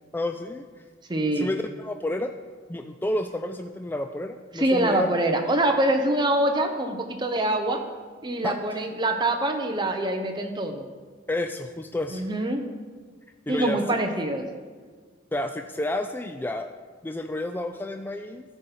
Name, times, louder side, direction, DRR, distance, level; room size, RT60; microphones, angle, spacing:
voice 1, 0.1-0.7 1.3-2.3 2.7-5.2 8.4-8.8 11.3-12.2 13.5-13.8 15.3-16.7 17.0-18.4, left 1 dB, 10° left, 6 dB, 0.3 m, -30 dB
voice 2, 1.1-1.5 4.5-7.8 8.2-10.8 12.1-12.6 13.5-14.5, right 1 dB, 25° right, 4 dB, 0.9 m, -24 dB
13.5 x 5.3 x 5.8 m, 1.5 s
head